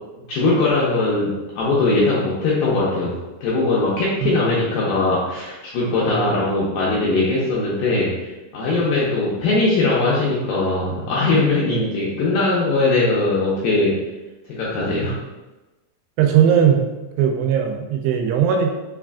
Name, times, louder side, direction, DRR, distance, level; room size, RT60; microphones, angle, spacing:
voice 1, 0.3-3.1 3.4-14.0 14.5-15.1, left 2 dB, 85° left, -6 dB, 2.1 m, -20 dB
voice 2, 6.1-6.4 11.7-11.8 16.2-16.9 17.2-18.7, right 8 dB, 90° right, 3 dB, 2.7 m, -18 dB
6.1 x 2.5 x 2.3 m, 1.1 s
omnidirectional pair, 4.7 m